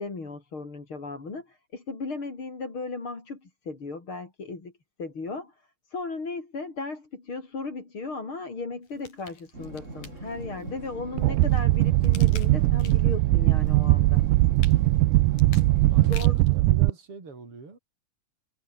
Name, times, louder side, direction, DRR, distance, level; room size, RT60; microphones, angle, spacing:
voice 1, 0.0-4.7 5.0-14.2 15.9-16.4, left 3 dB, 40° left, 5.2 m, -36 dB
sound 1, 8.8-10.6 11.2-13.2 13.6-16.6 17.1-17.2, left 6 dB, 80° left, 5.7 m, -47 dB
sound 2, 9.5-16.2, right 2 dB, 20° right, 4.3 m, -41 dB
sound 3, 11.2-16.9, right 19 dB, 85° right, 2.2 m, -20 dB
voice 2, 15.9-17.8, right 4 dB, 45° right, 6.3 m, -43 dB
omnidirectional pair, 3.6 m